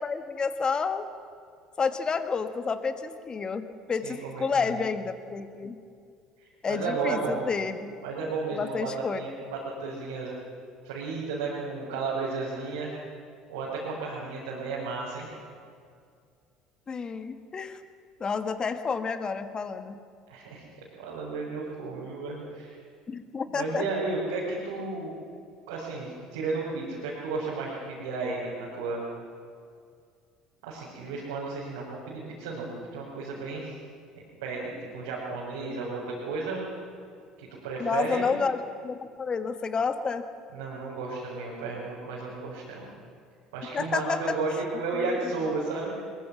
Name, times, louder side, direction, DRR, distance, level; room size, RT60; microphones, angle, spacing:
voice 1, 0.0-1.1 1.8-5.8 6.6-7.9 8.5-9.2 16.9-17.8 18.2-19.9 23.1-23.8 37.8-40.2 43.7-44.4 44.9-45.1, left 5 dB, 30° left, 9 dB, 1.6 m, -30 dB
voice 2, 4.0-4.8 6.7-7.4 8.0-10.3 10.8-12.9 13.5-15.3 20.3-20.6 21.0-22.8 23.5-25.1 25.7-29.1 30.6-33.7 34.4-36.7 37.4-38.2 40.5-42.8 43.5-45.9, right 3 dB, 75° right, -6 dB, 4.7 m, -33 dB
22.0 x 21.5 x 6.2 m, 2.3 s
hypercardioid pair, 60°, 3 cm